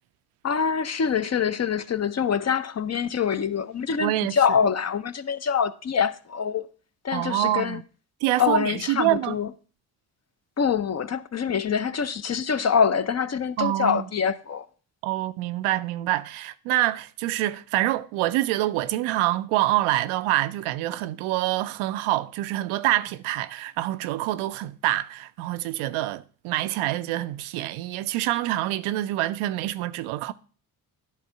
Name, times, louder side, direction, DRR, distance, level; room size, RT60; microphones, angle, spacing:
voice 1, 0.4-6.7 7.0-7.8 8.4-9.5 10.6-14.7, left 7 dB, 35° left, 0.6 m, -25 dB
voice 2, 4.0-4.4 7.1-7.8 8.2-9.4 13.6-14.0 15.0-30.3, right 15 dB, 75° right, 0.6 m, -26 dB
10.5 x 3.6 x 5.6 m
hypercardioid pair, 40°, 49 cm